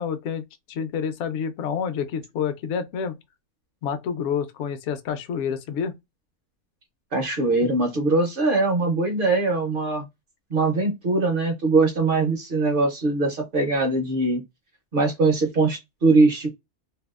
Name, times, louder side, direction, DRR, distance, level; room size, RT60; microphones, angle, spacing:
voice 1, 0.0-3.2 3.8-6.0, left 7 dB, 65° left, 0.8 m, -28 dB
voice 2, 7.1-10.1 10.5-14.4 14.9-16.5, right 3 dB, 55° right, 0.7 m, -21 dB
2.6 x 2.3 x 2.3 m
omnidirectional pair, 1.4 m